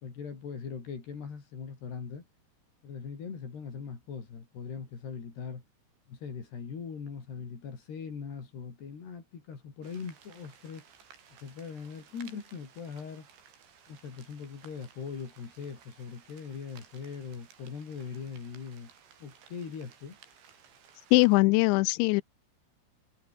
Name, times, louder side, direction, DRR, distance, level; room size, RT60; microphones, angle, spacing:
voice 1, 0.0-2.3 2.8-5.6 6.1-10.9 11.3-13.3 13.9-18.9 19.2-20.2, left 6 dB, 55° left, 6.8 m, -41 dB
sound 1, 9.8-21.4, right 7 dB, 65° right, 6.3 m, -57 dB
voice 2, 21.1-22.2, left 25 dB, 90° left, 2.6 m, -21 dB
omnidirectional pair, 5.7 m